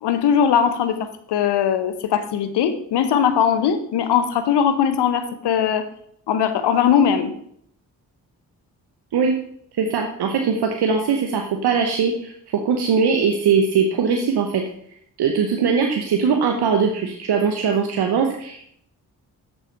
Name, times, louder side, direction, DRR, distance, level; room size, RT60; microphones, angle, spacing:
voice 1, 0.0-5.9 6.3-7.3, left 8 dB, 75° left, 10 dB, 0.9 m, -20 dB
voice 2, 9.7-14.6 15.2-18.7, right 6 dB, 70° right, 3 dB, 1.0 m, -21 dB
7.2 x 6.7 x 4.6 m, 0.68 s
supercardioid pair, 45°, 41 cm